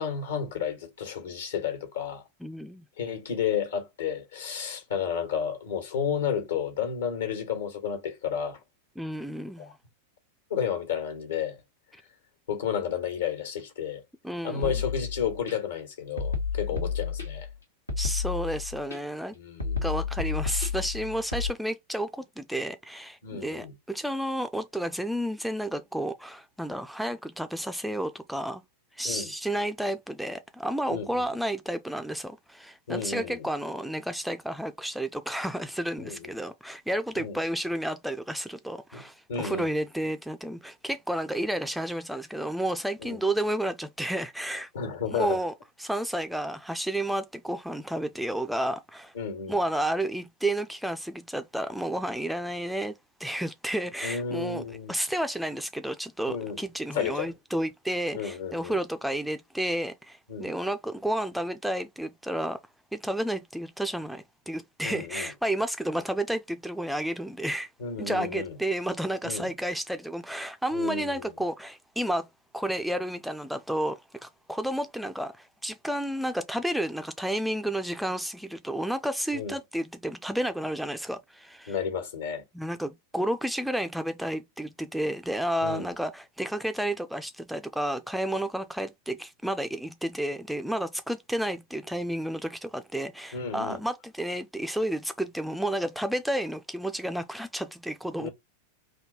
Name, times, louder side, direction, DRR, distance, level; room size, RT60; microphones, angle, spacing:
voice 1, 0.0-2.2 3.0-8.6 9.6-9.7 10.5-11.6 12.5-14.0 14.4-17.5 19.3-19.9 23.2-23.7 29.0-29.3 30.9-31.2 32.9-33.5 36.0-36.3 37.2-37.4 38.9-39.0 39.3-39.7 43.0-43.2 44.7-45.4 49.1-49.6 54.0-54.9 56.3-56.6 56.9-57.3 58.1-58.8 60.3-60.5 64.8-65.3 67.8-68.6 69.2-69.5 70.7-71.3 79.3-79.5 81.7-82.4 85.6-85.9 93.3-93.8 98.2-98.3, left 7 dB, 65° left, 1.3 m, -32 dB
voice 2, 2.4-2.8 9.0-9.7 14.2-14.7 18.0-19.4 19.8-28.6 28.9-44.7 45.1-45.5 45.8-49.1 49.5-54.6 54.9-62.6 62.9-67.7 68.0-72.3 72.5-81.7 82.5-98.3, right 1 dB, ahead, 0.3 m, -31 dB
sound 1, 14.6-15.5 16.2-17.5 17.9-19.0 19.6-21.5, left 5 dB, 80° left, 1.1 m, -31 dB
4.2 x 2.7 x 2.9 m
figure-of-eight pair, 90°, 0 cm